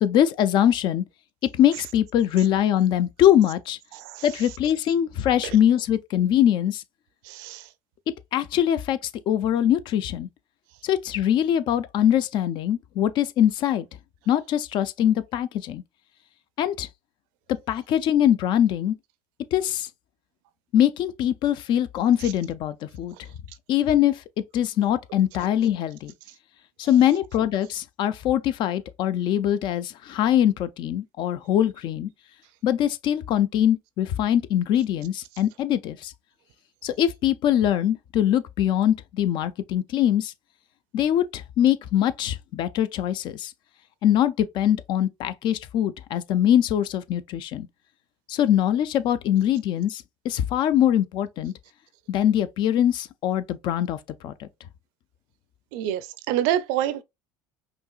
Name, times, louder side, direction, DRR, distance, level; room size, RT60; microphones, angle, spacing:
voice 1, 0.0-1.0 1.5-3.8 4.2-6.8 8.3-9.0 9.3-10.3 10.8-13.9 14.3-15.8 16.6-16.9 17.7-18.9 19.5-19.9 20.7-23.1 23.7-24.2 24.5-26.1 26.8-32.1 32.6-36.1 36.8-40.3 40.9-43.5 44.0-47.7 48.3-51.5 52.1-54.0 54.2-54.5, left 10 dB, 55° left, 0.5 m, -22 dB
voice 2, 3.9-4.4 7.2-7.7 55.7-57.0, right 11 dB, 75° right, 0.6 m, -27 dB
5.2 x 2.9 x 2.4 m
supercardioid pair, 100°, 9 cm